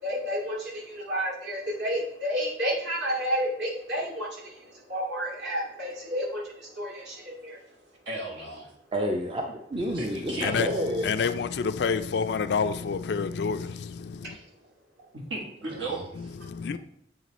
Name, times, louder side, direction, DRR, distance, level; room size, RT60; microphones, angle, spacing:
voice 1, 0.0-7.6, equal, 60° right, 2.3 m, -31 dB
voice 2, 8.1-8.7 9.9-10.6 15.1-16.0, right 2 dB, 80° right, 1.6 m, -35 dB
voice 3, 8.9-11.1 15.7-16.0, equal, 30° right, 0.5 m, -30 dB
voice 4, 10.3-10.7 11.0-14.4 16.2-16.8, left 5 dB, 60° left, 0.3 m, -28 dB
7.6 x 3.2 x 4.1 m
head